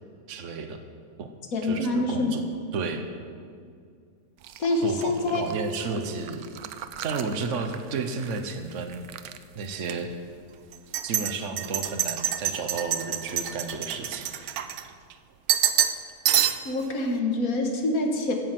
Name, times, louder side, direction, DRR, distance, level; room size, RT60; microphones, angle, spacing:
voice 1, 0.3-0.8 1.2-1.3 1.6-2.4 2.7-3.1 4.8-6.4 7.0-9.1 9.5-10.1 11.0-14.3, right 4 dB, 60° right, 6 dB, 1.3 m, -32 dB
voice 2, 1.5-2.4 4.6-5.4 16.6-18.3, left 2 dB, 75° left, 2 dB, 1.9 m, -26 dB
sound 1, 4.4-8.4 8.7-9.4 9.8-9.9 10.7-15.1 15.5-16.8, right 10 dB, 90° right, 1.2 m, -28 dB
15.5 x 10.0 x 6.0 m, 2.2 s
omnidirectional pair, 1.5 m